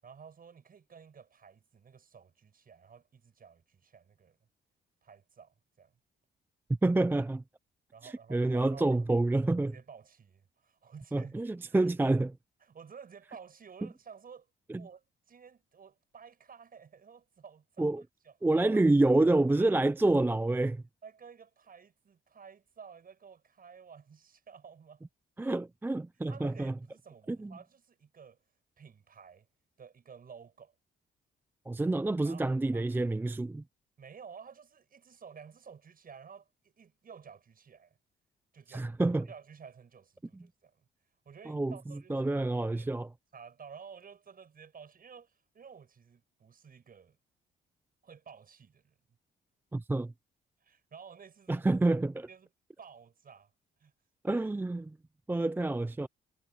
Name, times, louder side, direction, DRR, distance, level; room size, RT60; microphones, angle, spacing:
voice 1, 0.0-4.4 5.0-6.0 7.9-9.0 9.5-11.3 11.7-11.9 12.6-14.5 14.8-18.6 19.0-19.2 19.6-19.8 21.0-25.1 26.3-28.4 28.8-29.5 29.8-30.7 32.2-32.8 34.0-38.0 38.5-40.9 41.3-42.9 43.3-47.2 48.0-49.0 50.6-51.6 52.3-52.5 52.8-53.5 53.8-53.9, right 6 dB, 45° right, 7.4 m, -53 dB
voice 2, 6.8-7.4 8.0-9.8 11.1-12.3 14.7-14.9 17.8-18.0 18.4-20.8 25.4-26.7 27.3-27.5 31.7-33.6 38.7-39.3 40.3-40.5 41.5-43.1 49.7-50.1 51.5-52.3 54.2-55.0 55.3-56.1, right 2 dB, 10° right, 0.5 m, -28 dB
cardioid pair, 90°, 20 cm